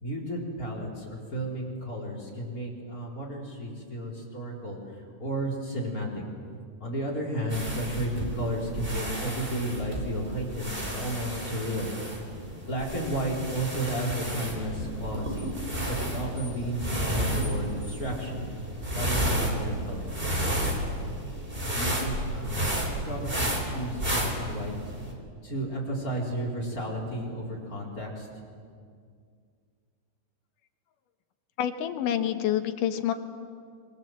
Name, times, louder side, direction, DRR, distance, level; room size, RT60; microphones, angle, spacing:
voice 1, 0.0-6.2 6.8-11.9 12.7-15.5 15.9-18.4 18.9-20.2 21.5-24.7 25.4-28.3, right 1 dB, 25° left, 0 dB, 4.3 m, -33 dB
sound 1, 7.5-25.1, right 1 dB, 15° right, 3.4 m, -32 dB
voice 2, 31.6-33.1, left 10 dB, 75° left, 8 dB, 2.7 m, -27 dB
26.5 x 24.0 x 7.7 m, 2.2 s
omnidirectional pair, 3.9 m